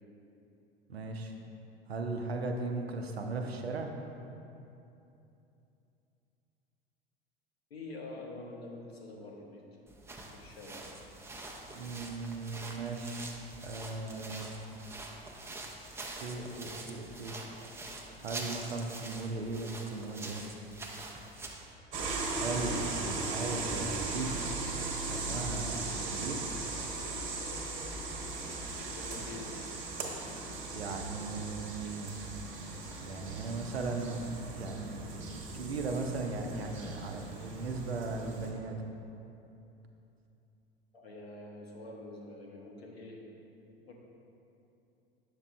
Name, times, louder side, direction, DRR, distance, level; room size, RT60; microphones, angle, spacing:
voice 1, 0.9-1.3 1.9-3.9 11.7-13.2 13.6-14.5 16.2-17.4 18.2-20.4 22.4-24.3 25.0-25.8 26.1-26.4 30.7-32.1 33.0-38.8, right 3 dB, 80° right, 3 dB, 0.6 m, -37 dB
voice 2, 7.7-9.6 10.3-10.9 28.9-29.7 40.9-43.2 43.9-44.0, left 2 dB, 80° left, -1 dB, 0.9 m, -46 dB
sound 1, 9.9-21.7, right 2 dB, 10° right, 0.5 m, -45 dB
sound 2, 21.9-38.5, right 3 dB, 40° right, 1.0 m, -38 dB
8.0 x 6.0 x 2.3 m, 2.8 s
figure-of-eight pair, 75°, 30 cm